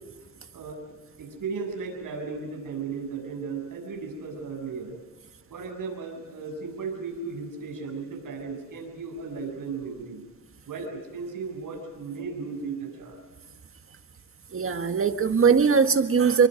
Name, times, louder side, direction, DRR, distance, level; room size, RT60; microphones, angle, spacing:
voice 1, 0.5-0.8 1.2-5.0 5.5-10.2 10.7-13.2, right 4 dB, 60° right, 3 dB, 7.7 m, -35 dB
voice 2, 14.5-16.5, right 6 dB, 35° right, 8 dB, 1.7 m, -20 dB
28.5 x 24.0 x 5.2 m, 1.4 s
cardioid pair, 110°, 37 cm